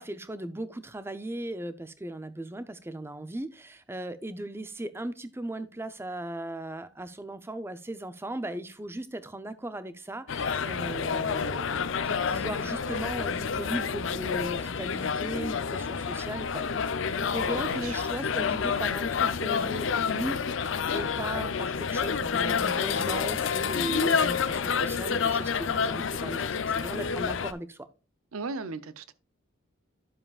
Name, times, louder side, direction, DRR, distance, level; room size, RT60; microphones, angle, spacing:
voice 1, 0.0-27.9, right 1 dB, 10° right, 0.5 m, -37 dB
sound 1, 10.3-27.5, left 6 dB, 60° left, 0.6 m, -29 dB
voice 2, 28.3-29.1, right 4 dB, 80° right, 0.6 m, -36 dB
11.0 x 7.2 x 2.4 m
head